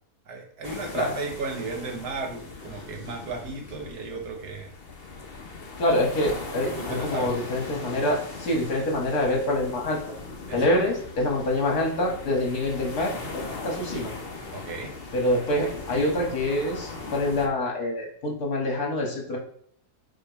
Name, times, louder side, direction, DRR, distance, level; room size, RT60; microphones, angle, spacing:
voice 1, 0.3-4.7 6.8-7.3 10.5-10.8 14.5-14.9, right 4 dB, 75° right, 3 dB, 1.6 m, -34 dB
sound 1, 0.6-17.5, left 3 dB, 45° left, 1.1 m, -39 dB
voice 2, 5.8-10.0 10.5-14.1 15.1-19.4, left 1 dB, 70° left, 0 dB, 2.3 m, -26 dB
7.7 x 4.4 x 3.2 m, 0.62 s
omnidirectional pair, 1.7 m